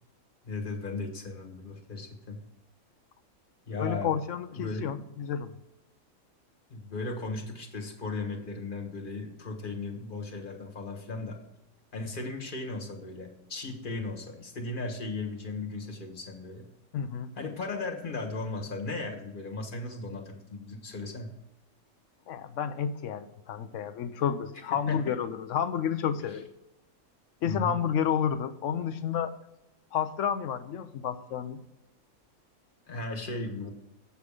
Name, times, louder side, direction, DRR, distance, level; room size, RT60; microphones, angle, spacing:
voice 1, 0.4-2.4 3.7-4.1 4.5-4.9 6.7-11.4 11.9-16.7 17.3-21.3 24.7-25.0 26.3-26.4 27.4-27.8 32.9-33.7, left 3 dB, 40° left, 2 dB, 1.5 m, -36 dB
voice 2, 3.8-5.5 16.9-17.3 22.3-26.5 27.4-29.3 29.9-31.6, left 8 dB, 70° left, 11 dB, 0.9 m, -30 dB
7.9 x 7.0 x 4.8 m, 0.91 s
omnidirectional pair, 1.5 m